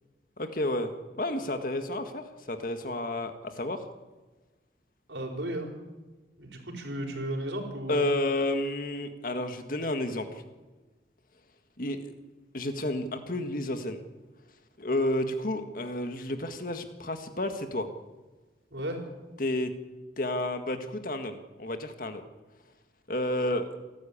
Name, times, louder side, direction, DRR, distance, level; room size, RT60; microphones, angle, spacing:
voice 1, 0.4-0.9 1.2-3.8 7.9-10.4 11.8-12.0 12.5-14.0 14.8-17.9 19.4-19.7 20.2-22.2 23.1-23.7, left 1 dB, 50° left, 7 dB, 1.8 m, -31 dB
voice 2, 5.1-5.7 6.4-8.1 18.7-19.0, right 1 dB, 80° right, 2 dB, 4.8 m, -34 dB
27.5 x 12.5 x 8.8 m, 1.3 s
head